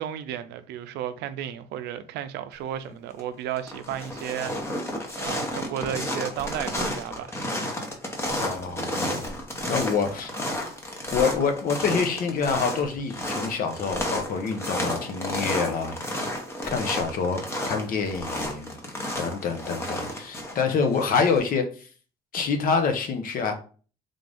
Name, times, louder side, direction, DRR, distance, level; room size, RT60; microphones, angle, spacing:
voice 1, 0.0-4.8 5.2-7.8, right 10 dB, 80° right, 0.5 m, -33 dB
sound 1, 2.9-3.2 3.5-21.4, left 1 dB, 15° left, 0.9 m, -32 dB
voice 2, 8.3-9.3 9.6-10.3 11.1-16.0 16.7-18.8 19.2-21.9 22.3-23.5, left 5 dB, 55° left, 0.8 m, -26 dB
3.7 x 2.5 x 3.4 m
cardioid pair, 110°, 17 cm